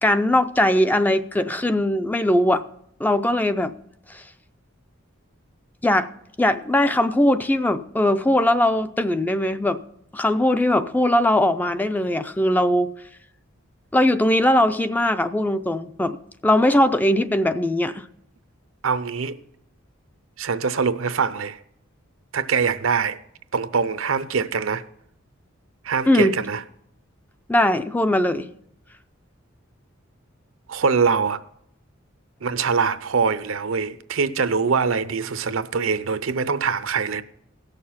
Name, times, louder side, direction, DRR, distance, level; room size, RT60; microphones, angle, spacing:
voice 1, 0.0-2.6 3.0-3.7 4.1-4.2 5.8-6.1 6.4-9.8 10.1-12.9 13.9-16.2 16.4-18.1 26.1-26.3 27.5-28.5, left 1 dB, 10° left, 0.3 m, -20 dB
voice 2, 18.8-19.4 20.4-21.6 22.3-23.2 23.5-24.8 25.8-26.6 30.7-31.4 32.4-37.2, right 5 dB, 75° right, 0.6 m, -23 dB
16.5 x 6.6 x 5.6 m
head